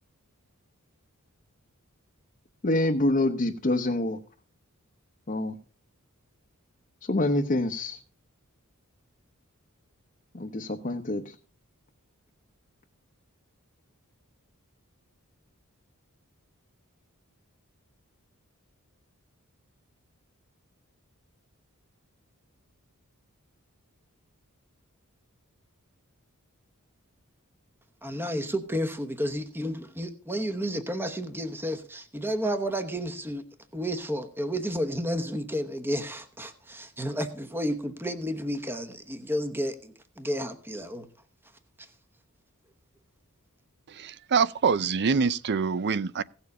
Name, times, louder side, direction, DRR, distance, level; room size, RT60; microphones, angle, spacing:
voice 1, 2.6-4.2 5.3-5.6 7.1-8.0 10.3-11.2, left 1 dB, 35° left, 0.8 m, -26 dB
voice 2, 28.0-33.4 33.7-41.0, equal, 10° right, 1.0 m, -31 dB
voice 3, 43.9-46.2, right 5 dB, 50° right, 0.5 m, -25 dB
16.5 x 7.1 x 5.4 m
head